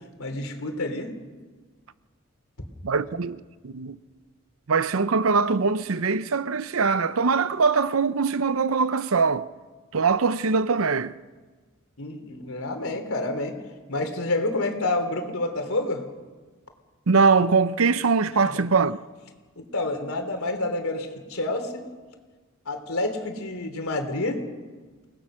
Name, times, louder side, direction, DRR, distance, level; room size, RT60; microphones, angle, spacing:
voice 1, 0.2-1.1 12.0-13.6 13.9-16.0 18.5-18.6 19.6-21.8 22.7-24.4, left 2 dB, 90° left, 3.3 m, -28 dB
voice 2, 2.8-4.0 4.7-9.5 9.9-11.2 17.1-19.0, right 4 dB, 80° right, 0.7 m, -22 dB
29.5 x 19.5 x 6.3 m
head